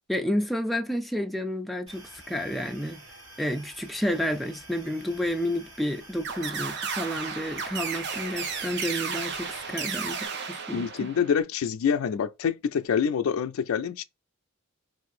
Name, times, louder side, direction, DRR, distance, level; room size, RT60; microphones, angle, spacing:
voice 1, 0.1-3.0 3.4-10.2 10.5-11.1, equal, ahead, 0.3 m, -30 dB
sound 1, 1.9-10.3, right 1 dB, 75° right, 1.7 m, -49 dB
sound 2, 6.2-11.4, right 5 dB, 55° right, 0.6 m, -33 dB
voice 2, 10.7-14.0, left 7 dB, 85° left, 0.4 m, -26 dB
2.7 x 2.5 x 4.1 m
head